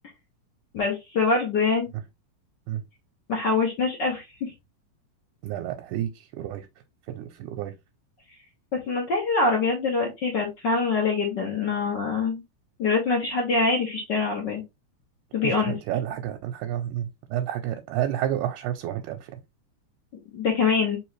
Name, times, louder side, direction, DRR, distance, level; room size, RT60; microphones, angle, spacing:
voice 1, 0.7-1.9 3.3-4.5 8.7-12.4 12.8-14.6 15.3-15.7 20.3-21.0, left 4 dB, 70° left, 1.0 m, -24 dB
voice 2, 5.4-6.7 7.1-7.7 15.4-19.3, right 11 dB, 90° right, 2.1 m, -30 dB
4.6 x 3.0 x 3.1 m
omnidirectional pair, 3.5 m